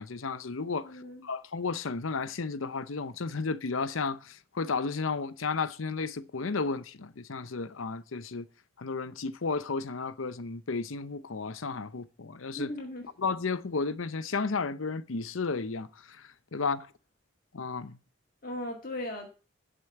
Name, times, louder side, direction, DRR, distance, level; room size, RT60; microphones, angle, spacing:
voice 1, 0.0-8.5 8.8-12.7 13.2-16.9 17.5-18.0, left 4 dB, 80° left, 0.7 m, -33 dB
voice 2, 0.8-1.3 12.6-13.1 18.4-19.3, left 1 dB, 45° left, 1.7 m, -37 dB
12.0 x 5.1 x 7.8 m
head